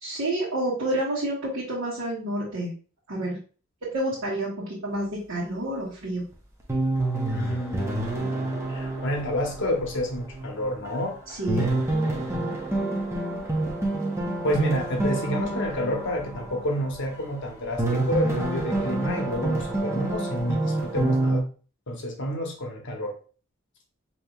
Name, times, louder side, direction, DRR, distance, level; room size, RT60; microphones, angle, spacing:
voice 1, 0.0-2.7 3.1-3.4 3.8-6.2 11.3-11.7, right 1 dB, 75° right, -10 dB, 1.4 m, -29 dB
sound 1, 6.3-6.4 6.7-10.9 11.3-17.4 17.8-21.4, right 2 dB, 15° right, 0.7 m, -28 dB
voice 2, 7.3-11.2 11.5-11.7 12.3-12.4 14.4-21.4 21.9-23.2, left 1 dB, 60° left, 1 dB, 1.0 m, -29 dB
5.1 x 2.9 x 2.4 m, 0.38 s
head